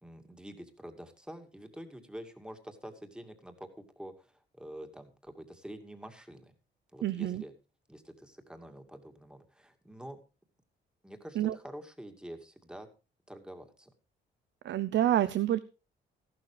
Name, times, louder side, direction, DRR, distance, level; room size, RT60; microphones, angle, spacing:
voice 1, 0.0-6.5 6.9-7.5 7.9-10.2 11.0-12.9 13.3-13.9, equal, 5° right, 5 dB, 2.4 m, -47 dB
voice 2, 7.0-7.4 11.4-11.5 14.6-15.6, right 12 dB, 65° right, 13 dB, 0.7 m, -27 dB
14.0 x 12.0 x 3.3 m, 0.31 s
cardioid pair, 90°, 20 cm